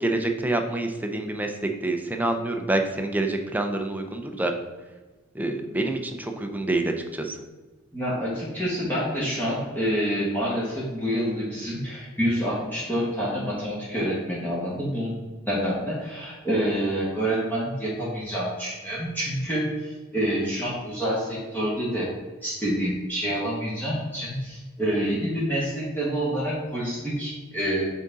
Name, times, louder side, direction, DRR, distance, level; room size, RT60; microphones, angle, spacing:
voice 1, 0.0-1.5 1.8-4.5 5.3-7.4, right 2 dB, 10° right, 4 dB, 0.5 m, -27 dB
voice 2, 7.9-15.1 15.5-22.1 22.4-27.8, equal, 10° left, -7 dB, 1.2 m, -27 dB
6.5 x 3.6 x 4.0 m, 1.3 s
head